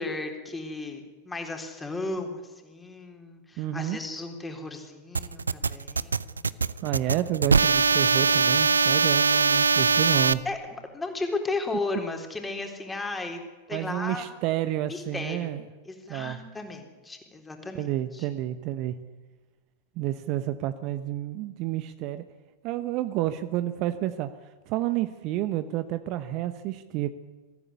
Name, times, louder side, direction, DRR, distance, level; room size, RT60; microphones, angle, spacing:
voice 1, 0.0-6.5 10.4-10.6 10.9-13.4 13.7-14.3 14.9-15.5 15.9-18.3, left 3 dB, 10° left, 4 dB, 3.9 m, -35 dB
voice 2, 3.6-4.0 6.8-10.4 13.7-15.6 16.1-16.4 17.7-18.9 20.0-22.2 22.6-24.3 24.7-27.1, right 13 dB, 40° right, 11 dB, 1.1 m, -30 dB
sound 1, 5.1-10.3, right 5 dB, 75° right, 0.6 m, -22 dB
23.0 x 15.0 x 9.7 m, 1.3 s
figure-of-eight pair, 90°, 0 cm